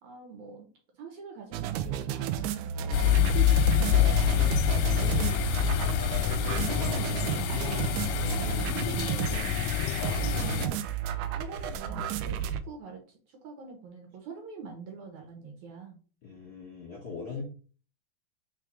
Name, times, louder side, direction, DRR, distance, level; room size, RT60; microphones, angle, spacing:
voice 1, 0.0-3.5 3.9-4.6 4.9-7.3 7.5-8.0 8.3-9.6 10.0-11.0 11.3-16.0 17.3-17.4, right 5 dB, 65° right, 2 dB, 2.3 m, -45 dB
sound 1, 1.5-12.6, right 10 dB, 80° right, 1.8 m, -32 dB
sound 2, 2.9-10.7, left 10 dB, 80° left, 2.1 m, -26 dB
voice 2, 16.2-17.4, left 5 dB, 40° left, -3 dB, 1.7 m, -41 dB
4.7 x 4.6 x 4.8 m, 0.38 s
omnidirectional pair, 4.2 m